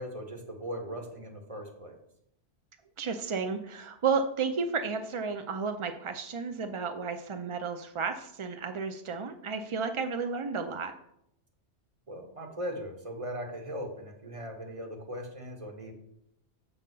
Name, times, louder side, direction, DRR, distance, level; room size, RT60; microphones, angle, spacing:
voice 1, 0.0-2.0 12.1-15.9, equal, 30° right, 3 dB, 1.3 m, -39 dB
voice 2, 3.0-10.9, right 5 dB, 55° right, 7 dB, 0.3 m, -32 dB
7.5 x 3.8 x 6.6 m, 0.76 s
omnidirectional pair, 1.2 m